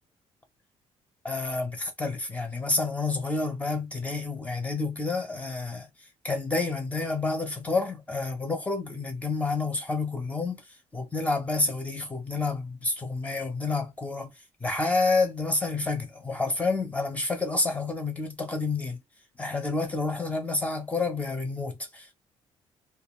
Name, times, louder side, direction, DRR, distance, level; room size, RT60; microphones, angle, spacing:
voice 1, 1.2-5.9 6.2-10.6 10.9-14.3 14.6-19.0 19.4-22.1, left 3 dB, 10° left, 0.7 m, -29 dB
2.5 x 2.4 x 3.0 m
cardioid pair, 145°, 11 cm